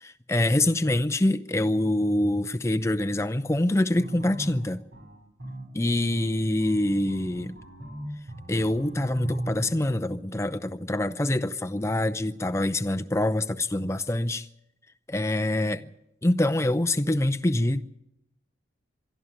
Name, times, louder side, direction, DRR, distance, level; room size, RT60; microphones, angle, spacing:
voice 1, 0.0-4.8 5.7-7.6 8.5-14.5 15.1-15.9 16.2-17.8, left 1 dB, 15° left, 0.6 m, -25 dB
sound 1, 4.0-9.7, right 1 dB, 65° right, 7.1 m, -38 dB
24.0 x 13.0 x 9.0 m
head